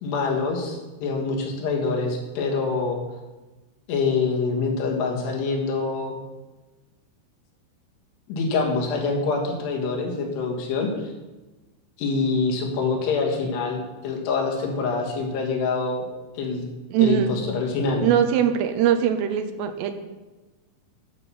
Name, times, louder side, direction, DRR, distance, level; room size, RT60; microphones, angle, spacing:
voice 1, 0.0-3.0 3.9-6.2 8.3-11.1 12.0-16.0 16.4-16.6 17.0-18.1, left 4 dB, 80° left, 0 dB, 3.6 m, -25 dB
voice 2, 16.9-17.4 18.0-19.9, right 9 dB, 85° right, 7 dB, 2.8 m, -21 dB
9.4 x 5.7 x 6.8 m, 1.2 s
omnidirectional pair, 4.8 m